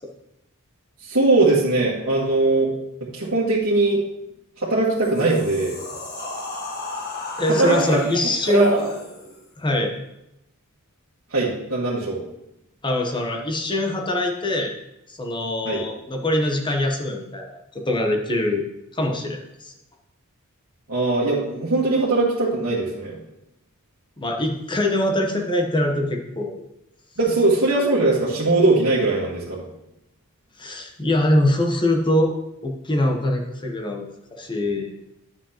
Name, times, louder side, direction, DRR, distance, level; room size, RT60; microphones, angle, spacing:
voice 1, 1.0-2.7 3.0-4.0 4.6-5.8 7.6-7.8 8.5-8.9 11.3-12.2 15.6-15.8 20.9-23.2 27.2-29.6, right 2 dB, 75° right, -8 dB, 1.7 m, -20 dB
sound 1, 4.8-9.4, left 2 dB, 50° left, 1.6 m, -34 dB
voice 2, 7.4-8.7 9.6-9.9 12.8-14.8 15.1-18.7 18.9-19.7 24.2-26.6 30.6-32.3 32.6-34.9, left 1 dB, 20° left, 2 dB, 1.0 m, -23 dB
9.8 x 7.2 x 3.0 m, 0.86 s
head